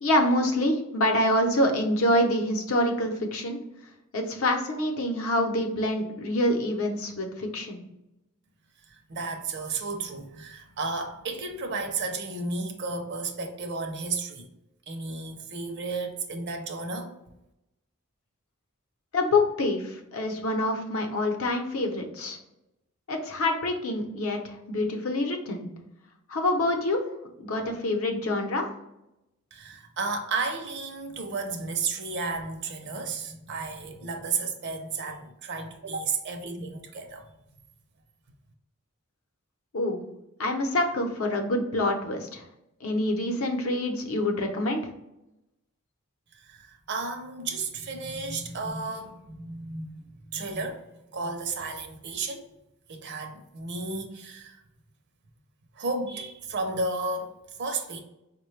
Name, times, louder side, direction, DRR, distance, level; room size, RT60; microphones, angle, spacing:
voice 1, 0.0-3.6 4.1-7.8 19.1-22.4 23.1-25.7 26.3-27.0 27.4-28.7 39.7-40.1 40.4-42.4 42.8-44.8, left 1 dB, 70° left, 0.7 m, -26 dB
voice 2, 8.9-14.5 14.9-17.2 29.5-37.3 46.3-50.8 51.1-52.5 52.9-54.6 55.7-58.0, right 3 dB, 55° right, 0.5 m, -33 dB
4.7 x 2.2 x 3.1 m
head